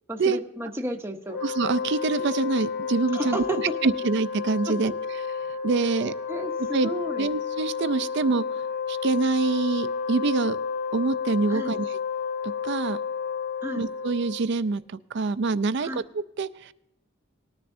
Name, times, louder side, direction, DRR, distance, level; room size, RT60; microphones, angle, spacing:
voice 1, 0.1-1.4 3.1-3.6 4.7-4.8 5.8-7.3 11.5-11.8 13.6-13.9 15.8-16.0, right 1 dB, 10° right, 2 dB, 0.8 m, -33 dB
Wind instrument woodwind instrument, 1.3-14.7, left 6 dB, 50° left, 4.9 m, -31 dB
voice 2, 1.4-3.5 3.8-4.9 5.6-6.1 6.7-6.9 7.2-8.4 8.9-10.6 10.9-12.0 12.4-13.0 13.8-16.7, right 4 dB, 55° right, 14 dB, 0.4 m, -25 dB
19.0 x 10.0 x 2.6 m, 0.87 s
head